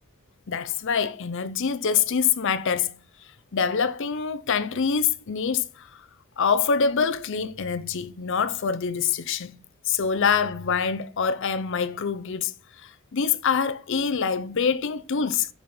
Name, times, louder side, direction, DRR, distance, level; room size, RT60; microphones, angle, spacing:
voice 1, 0.5-2.9 3.5-6.0 6.4-9.6 9.9-12.5 12.8-15.5, left 6 dB, 60° left, 0.5 m, -25 dB
8.4 x 4.3 x 5.5 m
head